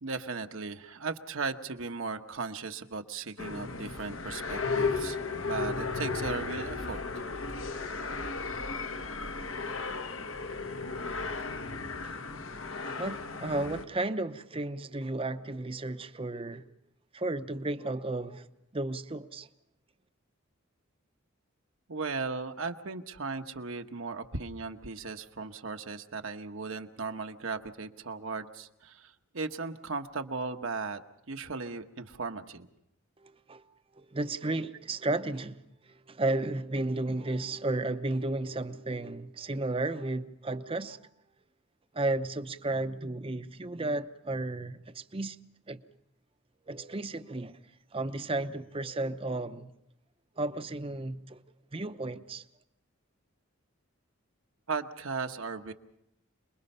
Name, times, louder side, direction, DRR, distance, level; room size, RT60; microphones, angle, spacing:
voice 1, 0.0-5.2 5.4-7.0 21.9-31.0 31.3-32.7 54.7-55.7, right 4 dB, 70° right, 1.1 m, -37 dB
sound 1, 3.4-13.8, left 4 dB, 70° left, 1.2 m, -35 dB
voice 2, 12.5-16.6 17.1-18.5 18.7-19.5 33.2-33.6 34.0-35.6 35.9-41.0 41.9-45.4 45.7-45.8 46.7-47.6 47.9-49.7 50.4-51.4 51.7-52.4, right 2 dB, 25° right, 0.7 m, -33 dB
27.5 x 21.5 x 5.5 m
head